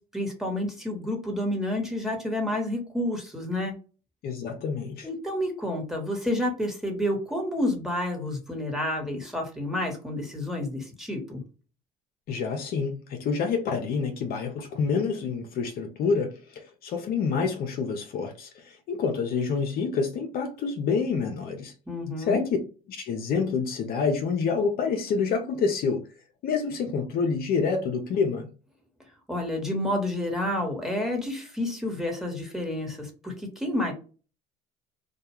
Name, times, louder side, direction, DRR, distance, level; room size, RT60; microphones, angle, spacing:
voice 1, 0.1-3.7 5.0-11.4 21.9-22.4 29.3-33.9, left 1 dB, ahead, 1.1 m, -29 dB
voice 2, 4.2-5.1 12.3-21.7 22.2-22.5 22.9-26.1 26.4-28.5, left 5 dB, 55° left, 0.6 m, -27 dB
2.3 x 2.2 x 2.9 m
hypercardioid pair, 75°, 18 cm